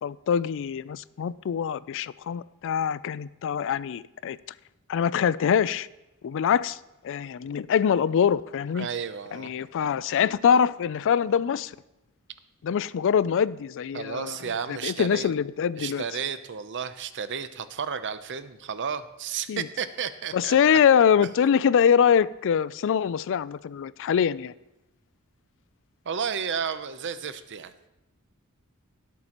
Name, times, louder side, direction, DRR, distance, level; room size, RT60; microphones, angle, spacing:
voice 1, 0.0-4.4 4.9-5.9 6.2-6.8 7.0-8.9 9.3-11.7 12.6-14.4 14.7-16.0 19.5-19.7 20.3-24.5, left 7 dB, 60° left, 0.3 m, -24 dB
voice 2, 8.7-9.5 13.9-15.3 15.8-20.8 26.1-27.9, right 6 dB, 55° right, 0.7 m, -32 dB
17.5 x 8.4 x 3.0 m
head